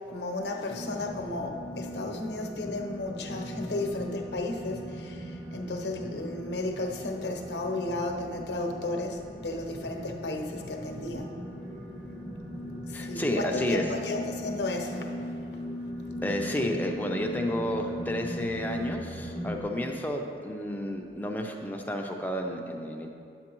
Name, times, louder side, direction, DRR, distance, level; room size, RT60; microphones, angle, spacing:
voice 1, 0.1-11.3 12.9-15.3, left 2 dB, 80° left, 2 dB, 0.8 m, -34 dB
sound 1, 0.7-19.6, equal, 25° right, 1.0 m, -39 dB
voice 2, 12.9-13.9 16.2-23.1, left 1 dB, 10° left, 1 dB, 0.5 m, -31 dB
9.6 x 8.3 x 3.0 m, 2.4 s
head